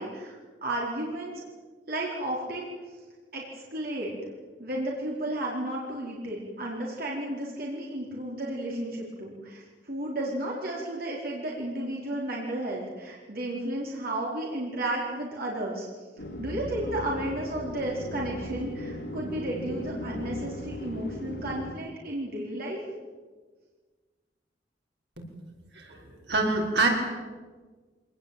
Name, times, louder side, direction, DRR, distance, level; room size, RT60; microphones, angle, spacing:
voice 1, 0.0-1.4 1.9-3.0 3.3-4.1 4.6-16.0 16.4-22.8, right 1 dB, 60° right, -3 dB, 4.6 m, -33 dB
sound 1, 16.2-21.7, left 1 dB, 70° left, 3.9 m, -37 dB
voice 2, 25.7-26.9, right 3 dB, 75° right, 1 dB, 6.0 m, -26 dB
25.5 x 19.5 x 9.2 m, 1.4 s
head